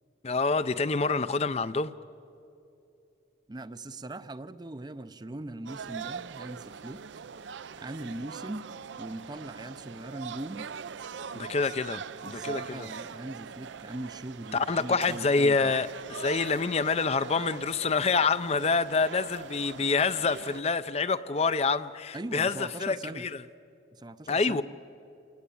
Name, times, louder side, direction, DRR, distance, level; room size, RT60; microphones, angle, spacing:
voice 1, 0.2-1.9 11.3-12.9 14.5-23.3 24.3-24.6, left 4 dB, 35° left, 0.5 m, -27 dB
voice 2, 3.5-7.0 7.8-8.7 9.0-10.7 11.6-11.7 12.2-15.8 22.1-23.3 23.9-24.6, right 2 dB, 20° right, 0.5 m, -40 dB
sound 1, 5.7-20.6, right 6 dB, 70° right, 0.5 m, -42 dB
28.0 x 19.0 x 8.4 m
head